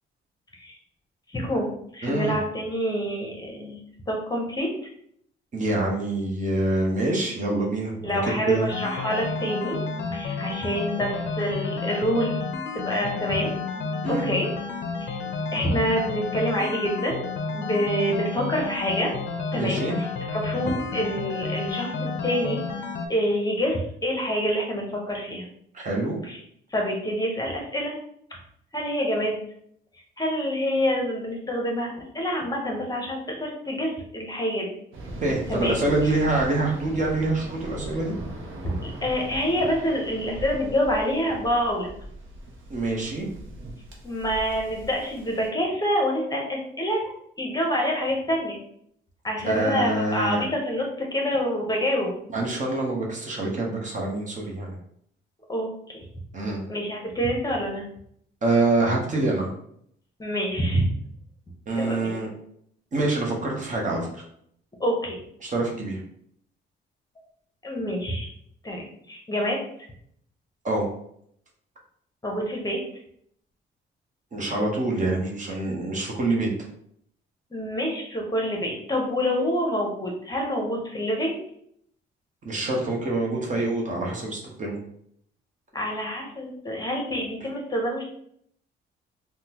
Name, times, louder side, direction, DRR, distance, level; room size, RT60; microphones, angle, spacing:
voice 1, 1.3-3.8 4.1-4.7 8.0-9.8 10.1-12.4 12.8-13.5 14.1-14.5 15.0-15.2 15.5-17.2 17.5-19.1 19.5-21.9 22.2-22.6 23.1-25.5 26.2-26.4 26.7-28.0 28.7-29.4 30.2-34.7 35.5-35.8 36.0-36.1 38.6-41.9 44.0-47.1 47.4-48.6 49.2-52.1 55.5-56.0 56.7-57.8 60.2-60.9 61.7-62.2 64.8-65.2 67.6-68.3 68.6-69.6 72.2-72.8 77.5-81.4 85.7-88.0, equal, 20° left, 0 dB, 0.8 m, -27 dB
voice 2, 2.0-2.4 5.5-8.7 14.0-14.2 19.5-19.9 25.7-26.2 35.2-38.2 42.7-43.3 49.4-50.4 52.3-54.8 56.3-56.7 58.4-59.5 61.7-62.3 62.9-64.2 65.4-66.0 70.6-70.9 74.3-76.5 82.4-84.8, right 2 dB, 40° right, -1 dB, 0.9 m, -26 dB
sound 1, 8.7-23.1, left 4 dB, 65° left, 0.5 m, -31 dB
Waves surf, 34.9-45.5, right 1 dB, 75° right, 0.7 m, -39 dB
3.5 x 2.2 x 2.9 m, 0.68 s
cardioid pair, 90°, 20 cm